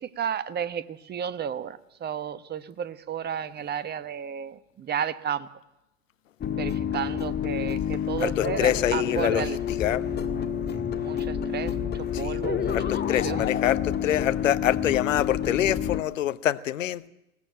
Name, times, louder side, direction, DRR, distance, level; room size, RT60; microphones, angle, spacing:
voice 1, 0.0-5.5 6.5-9.6 10.9-12.8 13.2-13.5, right 8 dB, 25° right, 1.1 m, -33 dB
sound 1, 6.4-16.0, left 8 dB, 25° left, 1.9 m, -28 dB
voice 2, 8.2-10.1 10.7-10.8 12.1-12.4 12.7-17.1, left 12 dB, 70° left, 1.0 m, -26 dB
21.0 x 18.0 x 9.0 m
figure-of-eight pair, 80°, 40 cm